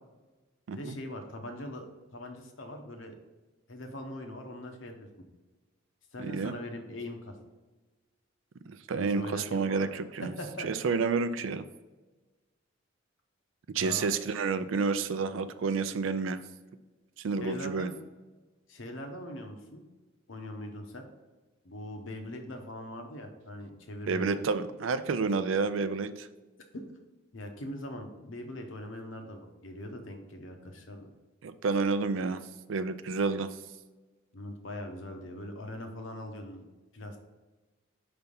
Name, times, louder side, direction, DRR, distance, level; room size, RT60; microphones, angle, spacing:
voice 1, 0.7-3.1 3.7-5.1 6.1-7.4 8.9-9.9 10.2-10.7 13.8-14.1 14.6-14.7 17.4-17.9 18.7-19.8 20.3-21.1 21.6-24.4 26.7-26.8 27.3-31.1 34.3-36.6 36.9-37.2, left 1 dB, 70° left, 4 dB, 0.9 m, -41 dB
voice 2, 6.2-6.5 8.7-10.3 10.6-11.6 13.7-16.4 17.2-17.9 24.1-26.3 31.4-32.4 32.7-33.5, right 4 dB, 70° right, 12 dB, 0.4 m, -30 dB
5.5 x 3.4 x 5.3 m, 1.2 s
head